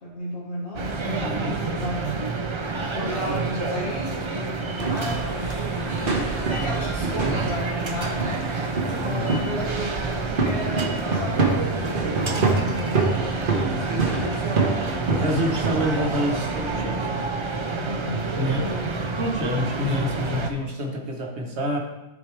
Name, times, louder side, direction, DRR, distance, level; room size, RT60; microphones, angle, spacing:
voice 1, 0.0-1.4 1.7-2.3 2.9-5.9 6.5-8.5 9.0-13.1 14.3-14.7 17.8-19.0, equal, 80° left, -7 dB, 1.8 m, -34 dB
sound 1, 0.8-20.5, right 3 dB, 35° right, 0.5 m, -29 dB
voice 2, 1.2-1.6 7.2-7.3 9.1-9.4 13.5-14.2 15.1-17.1 18.4-18.7 19.2-21.8, equal, 75° right, 1 dB, 1.5 m, -27 dB
sound 2, 4.8-16.8, right 3 dB, 50° right, 1.2 m, -27 dB
sound 3, 11.4-16.9, left 1 dB, 25° left, 0.8 m, -46 dB
13.0 x 4.7 x 3.3 m, 0.98 s
omnidirectional pair, 1.1 m